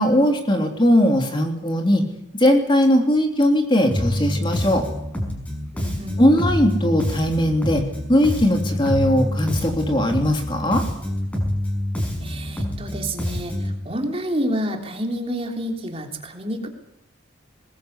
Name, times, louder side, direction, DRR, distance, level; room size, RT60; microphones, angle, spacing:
voice 1, 0.0-2.0 2.3-4.8 6.2-7.8 8.1-10.8, left 1 dB, 25° left, 3 dB, 3.3 m, -19 dB
Bass guitar, 3.9-13.8, left 1 dB, 5° left, 5.8 m, -27 dB
voice 2, 5.7-6.2 12.2-16.7, equal, 30° right, 3 dB, 3.3 m, -29 dB
21.0 x 21.0 x 8.3 m, 0.79 s
head